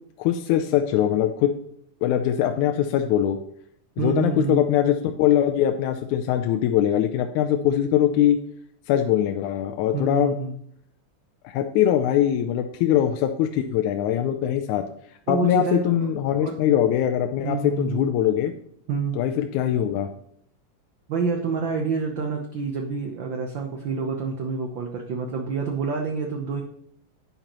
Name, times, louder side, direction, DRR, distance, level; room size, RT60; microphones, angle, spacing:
voice 1, 0.2-1.5 2.0-3.4 4.0-8.4 8.9-10.3 11.4-14.8 15.3-18.5 19.2-20.1, left 10 dB, 90° left, 6 dB, 2.0 m, -22 dB
voice 2, 4.0-4.6 9.9-10.6 15.3-15.9 16.3-16.5 17.4-18.1 18.9-19.4 21.1-26.6, right 5 dB, 75° right, 3 dB, 1.0 m, -27 dB
10.5 x 9.1 x 3.0 m, 0.65 s
omnidirectional pair, 3.3 m